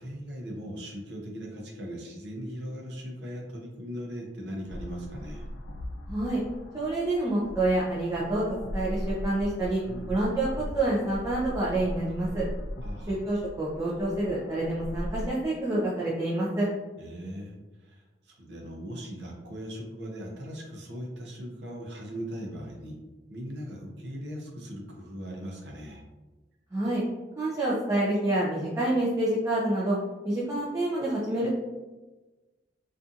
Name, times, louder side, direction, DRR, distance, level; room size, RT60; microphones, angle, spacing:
voice 1, 0.0-5.5 9.8-10.1 12.8-13.2 17.0-23.0 23.3-26.0, equal, 70° right, 0 dB, 0.6 m, -39 dB
sound 1, 4.7-15.3, equal, 85° left, 0.3 m, -38 dB
voice 2, 6.1-6.4 6.7-8.4 8.7-9.8 10.1-12.4 13.1-16.7 26.7-27.0 27.4-30.0 30.2-31.6, right 1 dB, 15° right, -7 dB, 0.4 m, -27 dB
2.6 x 2.4 x 2.4 m, 1.2 s
head